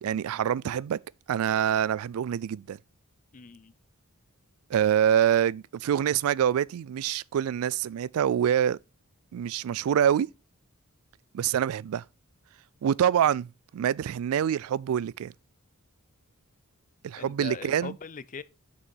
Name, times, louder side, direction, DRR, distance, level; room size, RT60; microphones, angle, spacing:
voice 1, 0.0-1.0 1.3-2.8 4.7-8.8 9.3-10.3 11.3-12.0 12.8-15.3 17.0-18.0, right 9 dB, 70° right, 0.3 m, -26 dB
voice 2, 3.3-3.7 17.2-18.4, left 5 dB, 35° left, 0.4 m, -40 dB
6.3 x 6.2 x 4.5 m
head